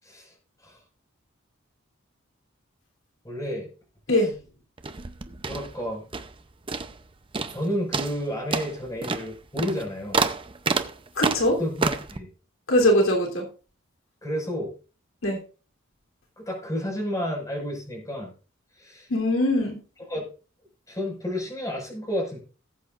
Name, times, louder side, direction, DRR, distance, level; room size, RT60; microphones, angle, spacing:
voice 1, 0.0-0.3 0.6-0.8 3.2-3.7 4.1-4.3 5.5-6.1 7.5-10.2 11.5-12.3 14.2-14.7 16.4-18.3 18.7-19.1 20.1-20.3 20.9-22.4, equal, 15° left, 0 dB, 5.6 m, -31 dB
sound 1, 4.8-6.4 6.7-7.1 7.3-7.6 7.9-12.2, right 4 dB, 25° right, 0.7 m, -28 dB
voice 2, 11.2-11.6 12.7-13.4 15.2-15.4 19.1-19.8, left 1 dB, 85° left, 1 dB, 3.4 m, -21 dB
19.0 x 8.4 x 2.5 m, 0.35 s
head